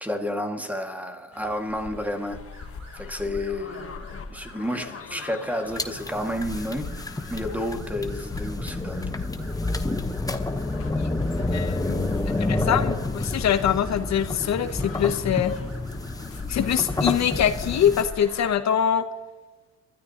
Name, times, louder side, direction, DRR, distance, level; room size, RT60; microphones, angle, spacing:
voice 1, 0.0-2.4 2.9-6.9 7.3-9.3, left 1 dB, 5° right, 4 dB, 1.9 m, -31 dB
sound 1, 1.3-18.6, left 5 dB, 50° left, 1.2 m, -39 dB
sound 2, 2.5-18.4, right 2 dB, 60° right, 6.2 m, -50 dB
sound 3, 5.7-18.0, left 2 dB, 10° left, 1.0 m, -29 dB
voice 2, 11.4-15.5 16.5-19.0, left 9 dB, 65° left, 10 dB, 0.9 m, -24 dB
25.0 x 13.0 x 2.9 m, 1.2 s
cardioid pair, 90°, 30 cm